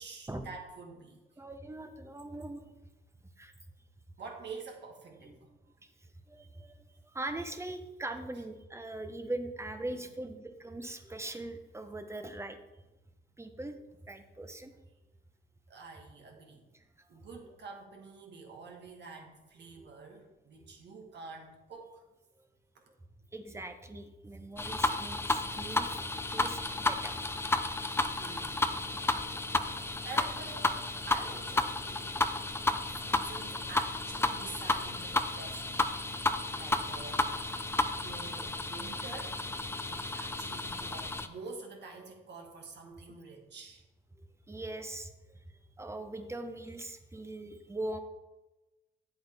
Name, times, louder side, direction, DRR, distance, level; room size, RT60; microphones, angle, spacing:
voice 1, 0.0-1.2 4.2-5.5 9.8-10.1 15.7-16.7 17.1-22.0 27.8-28.7 29.6-32.2 33.0-36.0 36.5-39.4 39.9-43.8, right 4 dB, 60° right, 1 dB, 2.0 m, -48 dB
voice 2, 1.4-2.6 3.4-3.5 5.3-5.4 5.8-12.6 13.4-14.7 16.7-17.1 19.8-19.9 23.3-26.0 26.3-27.2 27.5-27.6 44.2-48.0, right 2 dB, 15° right, 8 dB, 0.9 m, -41 dB
sound 1, 24.6-41.3, left 2 dB, 10° left, 0.5 m, -32 dB
8.7 x 7.9 x 3.5 m, 1.0 s
cardioid pair, 90°, 20 cm